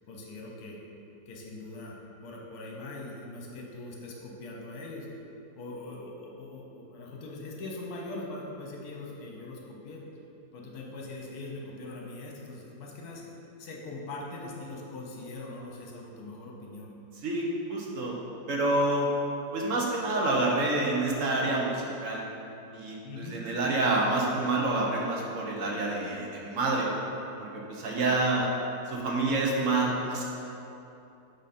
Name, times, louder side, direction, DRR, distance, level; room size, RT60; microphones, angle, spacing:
voice 1, 0.1-0.8 1.3-5.1 5.5-10.0 10.5-16.9 23.0-23.4 28.0-28.5, left 2 dB, 60° left, -2 dB, 1.4 m, -42 dB
voice 2, 17.2-18.1 18.5-19.1 19.5-22.2 22.7-26.9 27.4-28.5 28.9-30.2, right 2 dB, 55° right, -2 dB, 1.1 m, -28 dB
8.7 x 3.8 x 4.3 m, 2.8 s
omnidirectional pair, 2.0 m